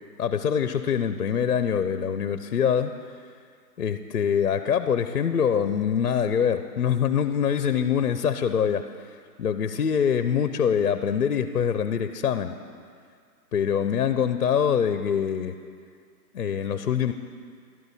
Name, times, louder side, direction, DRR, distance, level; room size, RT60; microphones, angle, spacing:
voice 1, 0.2-2.9 3.8-8.9 9.4-12.6 13.5-15.5 16.3-17.1, left 8 dB, 60° left, 10 dB, 0.6 m, -24 dB
12.5 x 11.5 x 4.1 m, 2.1 s
hypercardioid pair, 170°, 50 cm